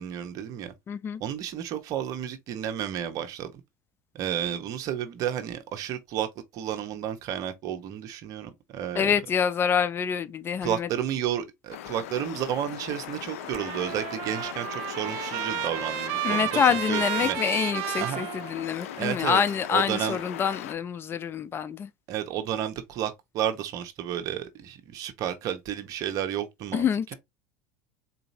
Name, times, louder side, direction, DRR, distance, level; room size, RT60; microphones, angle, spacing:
voice 1, 0.0-0.7 1.2-3.6 4.1-6.3 6.5-9.1 10.6-17.4 18.0-18.3 19.0-19.4 19.7-20.2 22.1-27.1, right 10 dB, 50° right, 1.0 m, -32 dB
voice 2, 0.9-1.2 9.0-10.9 16.2-21.9 26.7-27.1, left 7 dB, 30° left, 0.5 m, -26 dB
sound 1, 11.7-20.7, left 12 dB, 80° left, 0.4 m, -39 dB
Trumpet, 13.4-19.0, right 11 dB, 70° right, 0.6 m, -32 dB
4.0 x 2.8 x 2.7 m
hypercardioid pair, 95°, 7 cm